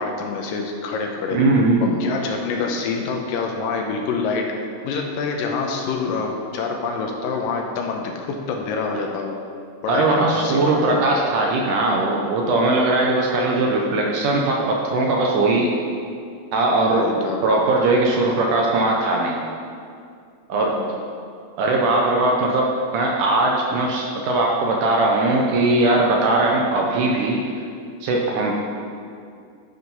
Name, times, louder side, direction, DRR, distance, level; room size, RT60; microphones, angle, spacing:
voice 1, 0.0-1.4 2.0-4.5 4.8-9.4 9.8-11.0 16.9-17.4 20.6-21.0 26.6-26.8, left 4 dB, 80° left, 1 dB, 2.3 m, -26 dB
voice 2, 1.3-2.0 9.9-15.7 16.5-17.1 17.4-19.5 20.5-20.8 21.6-27.4 28.0-28.5, right 2 dB, 70° right, -1 dB, 2.0 m, -19 dB
12.0 x 5.1 x 5.4 m, 2.4 s
omnidirectional pair, 4.3 m